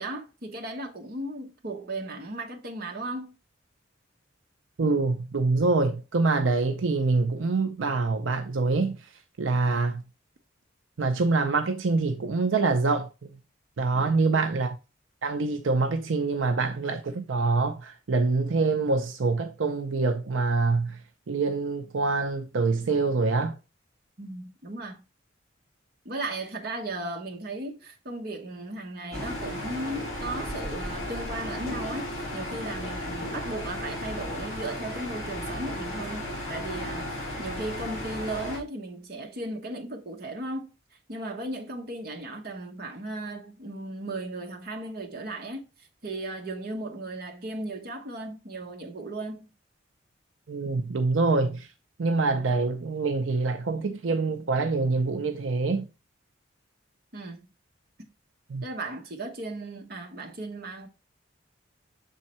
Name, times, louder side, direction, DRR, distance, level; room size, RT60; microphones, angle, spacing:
voice 1, 0.0-3.3 13.9-14.3 24.2-25.0 26.0-40.7 41.1-45.6 46.0-49.5 57.1-57.5 58.6-60.9, right 2 dB, 50° right, 1.2 m, -36 dB
voice 2, 4.8-9.0 9.4-10.0 11.0-13.1 13.8-14.8 15.2-21.0 21.3-23.6 50.5-51.7 52.0-55.9 58.5-58.6, right 3 dB, 80° right, 0.6 m, -25 dB
sound 1, 29.1-38.6, left 1 dB, 35° left, 2.7 m, -34 dB
6.3 x 3.8 x 4.3 m
head